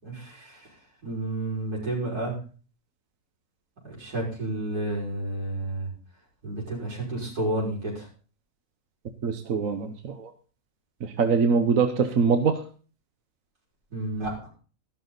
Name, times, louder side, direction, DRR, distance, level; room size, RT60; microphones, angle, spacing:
voice 1, 0.0-2.3 3.8-5.9 6.4-8.1 13.9-14.5, right 1 dB, 80° right, -4 dB, 6.2 m, -31 dB
voice 2, 9.2-10.3 11.0-12.6, right 5 dB, 60° right, 7 dB, 1.4 m, -23 dB
14.0 x 12.0 x 4.0 m, 0.38 s
omnidirectional pair, 1.6 m